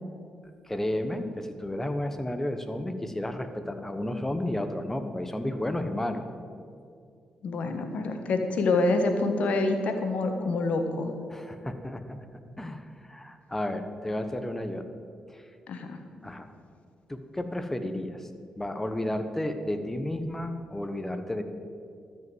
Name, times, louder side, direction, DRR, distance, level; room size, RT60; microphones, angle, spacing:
voice 1, 0.6-6.2 11.3-12.2 12.6-14.8 15.3-15.4 16.2-16.5 17.1-18.3 18.6-21.4, left 1 dB, 15° left, 8 dB, 1.1 m, -32 dB
voice 2, 7.4-11.1 15.7-16.0, left 2 dB, 70° left, 6 dB, 1.3 m, -26 dB
13.0 x 5.4 x 8.0 m, 2.3 s
cardioid pair, 65°, 2 cm